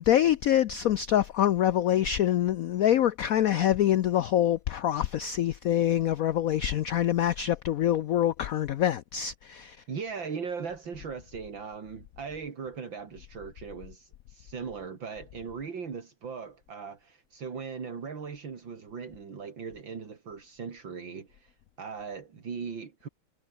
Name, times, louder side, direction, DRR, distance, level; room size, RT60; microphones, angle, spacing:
voice 1, 0.1-9.8, left 11 dB, 90° left, 0.7 m, -25 dB
voice 2, 9.9-23.1, right 5 dB, 70° right, 3.3 m, -39 dB
omnidirectional pair, 2.2 m